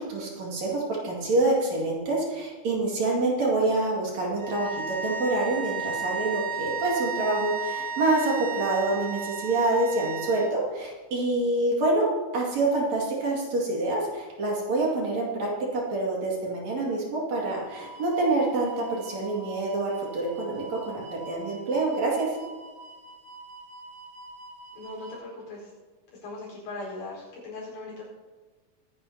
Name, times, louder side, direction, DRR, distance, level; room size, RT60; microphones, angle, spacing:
voice 1, 0.0-12.1 12.3-22.3, right 2 dB, 50° right, -3 dB, 3.1 m, -26 dB
sound 1, 4.4-10.5, right 5 dB, 25° right, 1.8 m, -33 dB
sound 2, 17.6-25.2, right 2 dB, 85° right, 1.1 m, -45 dB
voice 2, 24.7-25.7 26.2-28.1, left 2 dB, 85° left, -4 dB, 6.5 m, -39 dB
23.5 x 9.5 x 2.8 m, 1.3 s
omnidirectional pair, 4.5 m